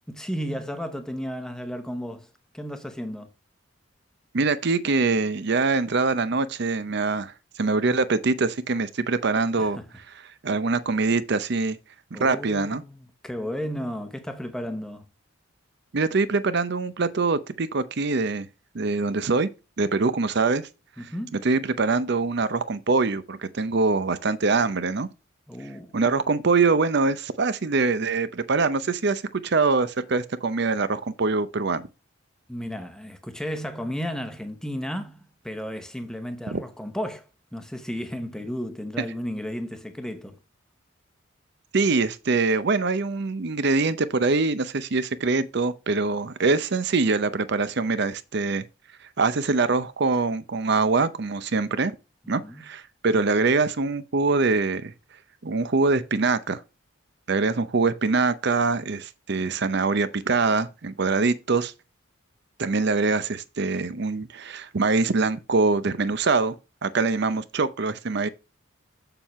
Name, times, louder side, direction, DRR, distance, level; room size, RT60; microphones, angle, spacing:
voice 1, 0.1-3.3 9.6-9.8 12.1-15.0 21.0-21.4 25.5-25.9 32.5-40.4 52.4-52.6, equal, 5° left, 0.9 m, -33 dB
voice 2, 4.3-9.8 10.4-11.8 12.1-12.8 15.9-18.5 18.7-19.5 19.8-20.7 21.0-25.1 25.9-31.9 36.5-36.6 41.7-51.9 52.3-56.6 57.3-61.7 62.6-66.6 66.8-68.3, right 3 dB, 55° right, 0.6 m, -24 dB
7.4 x 6.8 x 3.1 m
head